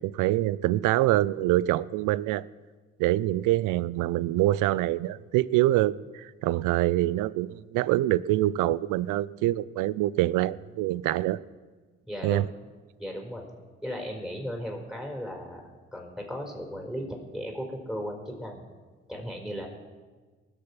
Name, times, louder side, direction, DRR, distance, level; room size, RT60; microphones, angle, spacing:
voice 1, 0.0-2.4 3.0-11.4 12.2-12.4, right 15 dB, 80° right, 21 dB, 0.5 m, -25 dB
voice 2, 12.1-12.5 13.0-13.5 13.8-15.6 15.9-18.6 19.1-19.7, equal, ahead, 1 dB, 4.7 m, -36 dB
20.0 x 6.9 x 5.8 m, 1.4 s
hypercardioid pair, 50°, 31 cm